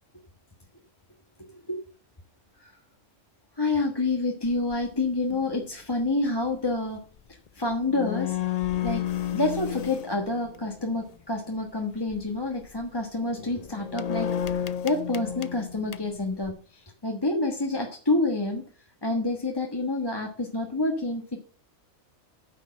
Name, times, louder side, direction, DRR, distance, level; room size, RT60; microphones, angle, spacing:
voice 1, 3.6-7.0 7.3-8.4 8.8-9.0 9.3-18.6 19.0-21.4, left 2 dB, 20° left, 1 dB, 1.3 m, -28 dB
sound 1, 4.4-4.7 5.3-5.5 7.5-7.6 7.7-11.1 11.9-12.2 12.6-12.8 13.3-16.5, left 10 dB, 55° left, 0.4 m, -32 dB
9.6 x 6.5 x 6.4 m, 0.39 s
omnidirectional pair, 1.3 m